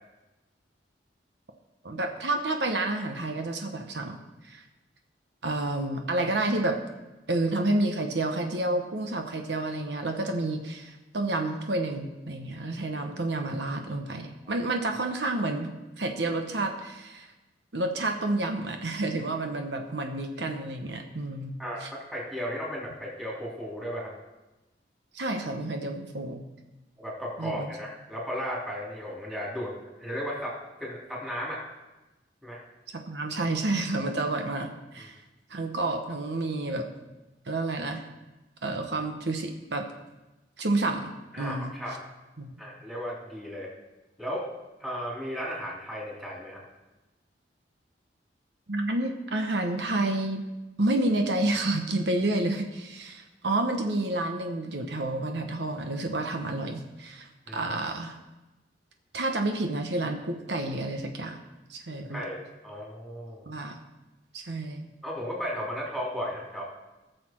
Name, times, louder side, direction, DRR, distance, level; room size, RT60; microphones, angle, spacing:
voice 1, 1.8-4.2 4.4-4.6 5.4-6.8 7.3-17.3 17.7-21.9 25.1-26.5 27.4-27.7 32.9-35.2 35.5-36.9 37.5-38.0 38.6-39.8 40.6-41.1 41.4-41.7 42.4-42.6 48.7-50.4 50.8-58.2 59.1-61.4 61.7-62.2 63.5-63.8 64.3-64.9, right 2 dB, 75° right, 4 dB, 1.0 m, -29 dB
voice 2, 21.6-24.1 27.0-29.7 30.0-31.6 32.4-32.6 35.0-35.1 41.3-42.0 42.6-43.7 44.2-44.5 44.8-46.6 57.5-57.7 62.1-63.4 65.0-66.6, equal, 5° right, -5 dB, 3.3 m, -35 dB
18.0 x 6.8 x 4.5 m, 1.1 s
head